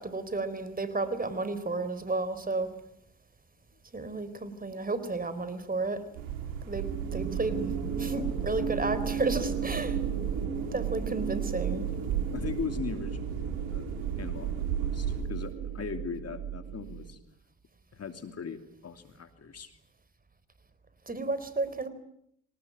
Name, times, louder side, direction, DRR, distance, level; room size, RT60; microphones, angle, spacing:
voice 1, 0.0-2.7 3.9-6.0 6.7-10.0 10.7-11.9 21.1-21.9, right 3 dB, 20° right, 13 dB, 4.2 m, -32 dB
sound 1, 6.1-15.2, right 9 dB, 85° right, 4.1 m, -35 dB
sound 2, 6.7-17.2, right 6 dB, 45° right, 4.5 m, -35 dB
voice 2, 12.3-13.9 14.2-17.2 17.9-19.7, left 6 dB, 40° left, 8 dB, 2.8 m, -39 dB
25.0 x 19.5 x 9.6 m, 0.73 s
supercardioid pair, 70°, 39 cm